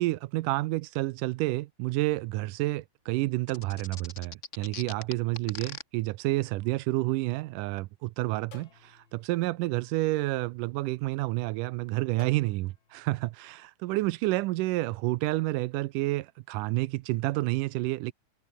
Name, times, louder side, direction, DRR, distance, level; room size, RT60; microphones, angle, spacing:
voice 1, 0.0-18.1, right 19 dB, 80° right, 2.2 m, -29 dB
sound 1, 3.5-5.8, left 6 dB, 65° left, 0.7 m, -41 dB
sound 2, 6.4-7.8 8.5-11.0 12.2-13.6, left 6 dB, 40° left, 2.5 m, -59 dB
omnidirectional pair, 3.7 m